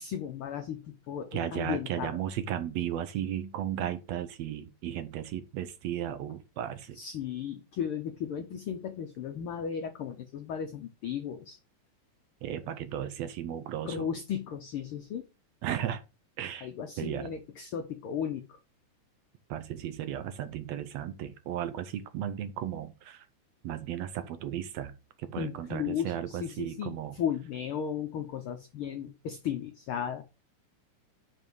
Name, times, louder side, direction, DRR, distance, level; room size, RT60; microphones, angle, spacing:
voice 1, 0.0-2.2 7.0-11.6 13.8-15.2 16.6-18.6 25.4-30.2, left 8 dB, 80° left, 1.2 m, -35 dB
voice 2, 1.3-7.0 12.4-14.1 15.6-16.0 16.4-16.7 17.0-17.3 19.5-23.3 23.6-24.9 25.2-27.2, right 10 dB, 75° right, 1.7 m, -35 dB
5.4 x 5.3 x 6.1 m
omnidirectional pair, 3.4 m